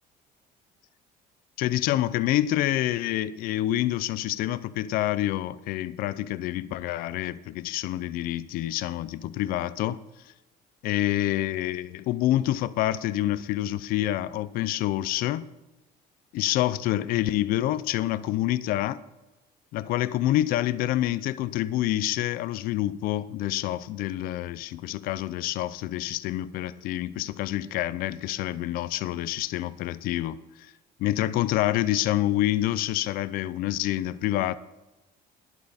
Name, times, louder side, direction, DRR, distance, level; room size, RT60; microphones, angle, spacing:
voice 1, 1.6-10.0 10.8-15.5 16.3-19.0 19.7-30.7 31.0-34.6, left 14 dB, 65° left, 0.5 m, -27 dB
11.5 x 11.0 x 4.1 m
cardioid pair, 160°, 16 cm